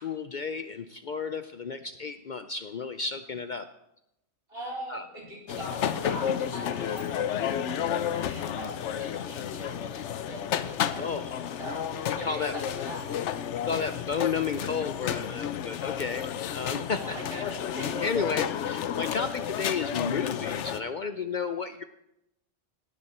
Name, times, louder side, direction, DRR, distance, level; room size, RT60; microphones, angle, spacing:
voice 1, 0.0-3.7 4.9-5.1 5.5-5.6 11.0-11.3 12.2-12.5 13.6-17.4 18.0-21.8, left 5 dB, 50° left, 10 dB, 0.6 m, -32 dB
voice 2, 4.5-13.1 17.0-18.1, equal, 55° right, -3 dB, 4.5 m, -41 dB
sound 1, 5.5-20.8, left 9 dB, 85° left, 1.0 m, -31 dB
18.5 x 9.7 x 4.3 m, 0.83 s
omnidirectional pair, 1.2 m